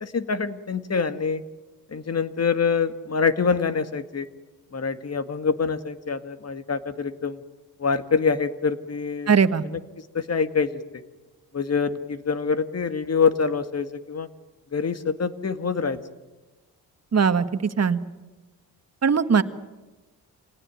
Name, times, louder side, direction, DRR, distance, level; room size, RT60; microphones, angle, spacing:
voice 1, 0.0-1.4 1.9-4.3 4.7-7.4 7.8-9.3 9.6-11.0 11.5-14.3 14.7-16.0, left 5 dB, 40° left, 11 dB, 2.0 m, -25 dB
voice 2, 9.3-9.6 17.1-18.0 19.0-19.4, right 6 dB, 40° right, 11 dB, 1.7 m, -20 dB
27.0 x 19.0 x 9.5 m, 1.2 s
cardioid pair, 75°, 38 cm